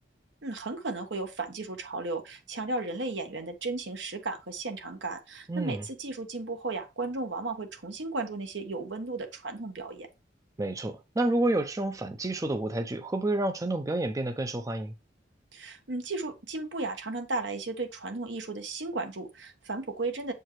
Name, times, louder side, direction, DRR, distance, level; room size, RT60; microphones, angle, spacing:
voice 1, 0.4-10.1 15.5-20.3, right 3 dB, 75° right, 1.1 m, -35 dB
voice 2, 5.5-5.8 10.6-14.9, right 2 dB, 20° right, 0.5 m, -29 dB
7.5 x 4.5 x 3.1 m
head